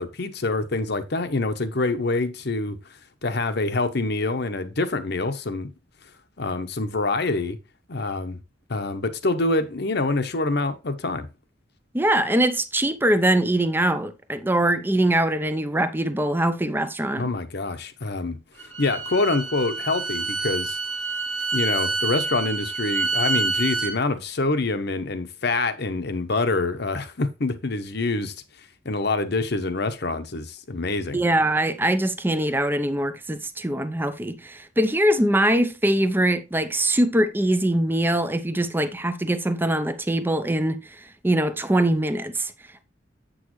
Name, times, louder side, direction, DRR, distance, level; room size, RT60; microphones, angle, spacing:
voice 1, 0.0-2.8 3.2-5.7 6.4-7.6 7.9-8.4 8.7-11.3 17.2-18.4 18.8-20.8 21.5-28.3 28.8-31.2, left 3 dB, 60° left, 0.9 m, -26 dB
voice 2, 11.9-17.3 31.1-40.8 41.2-42.5, right 1 dB, 10° right, 0.6 m, -22 dB
Bowed string instrument, 18.6-23.9, right 3 dB, 70° right, 1.8 m, -27 dB
8.3 x 6.4 x 3.1 m
head